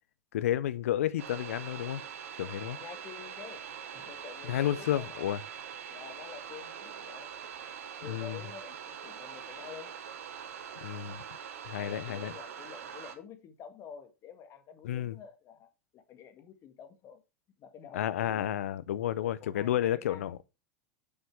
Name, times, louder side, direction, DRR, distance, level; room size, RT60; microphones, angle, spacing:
voice 1, 0.3-2.0 2.4-2.8 4.5-5.4 8.1-8.4 10.8-11.2 11.7-12.3 14.8-15.2 17.9-20.4, left 11 dB, 75° left, 0.7 m, -31 dB
sound 1, 1.2-13.2, right 8 dB, 75° right, 1.3 m, -43 dB
voice 2, 2.6-3.7 3.9-5.3 5.9-7.3 8.0-10.0 11.7-17.2 17.6-18.5 19.2-20.3, left 8 dB, 40° left, 1.6 m, -49 dB
7.9 x 5.6 x 4.7 m
hypercardioid pair, 95°, 7 cm